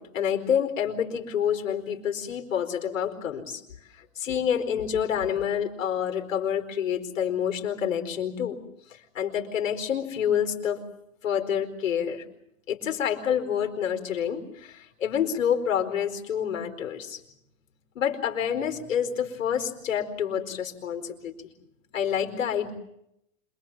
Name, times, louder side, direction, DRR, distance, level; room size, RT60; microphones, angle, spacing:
voice 1, 0.0-3.6 3.9-8.6 8.9-10.8 11.2-12.2 12.7-17.2 17.9-21.4 21.9-22.7, left 8 dB, 75° left, 4 dB, 4.6 m, -28 dB
27.5 x 22.0 x 7.4 m, 0.79 s
hypercardioid pair, 140°, 39 cm